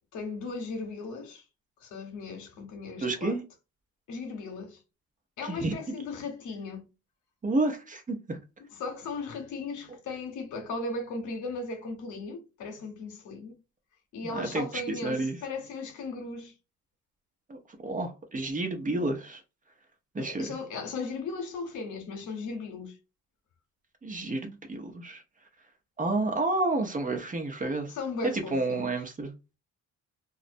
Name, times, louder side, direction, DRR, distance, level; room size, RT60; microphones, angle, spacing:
voice 1, 0.1-1.4 1.8-3.4 4.1-4.8 5.4-6.9 8.7-13.6 14.1-16.5 20.2-23.0 27.9-28.9, left 3 dB, 75° left, 0.9 m, -37 dB
voice 2, 3.0-3.4 5.4-5.7 7.4-8.4 14.2-15.4 17.5-19.4 20.1-20.6 24.0-25.2 26.0-27.9 28.3-29.3, right 2 dB, 25° right, 0.7 m, -30 dB
2.3 x 2.0 x 2.5 m
cardioid pair, 90°, 30 cm